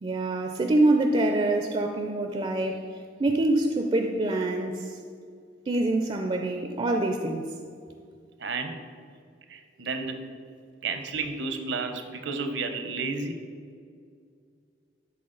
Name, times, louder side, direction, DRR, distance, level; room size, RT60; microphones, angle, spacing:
voice 1, 0.0-5.0 5.7-7.5, right 2 dB, 30° right, 4 dB, 0.4 m, -25 dB
voice 2, 8.4-8.8 9.5-10.3 10.8-13.4, right 4 dB, 75° right, 7 dB, 0.7 m, -32 dB
11.0 x 4.0 x 3.9 m, 2.2 s
head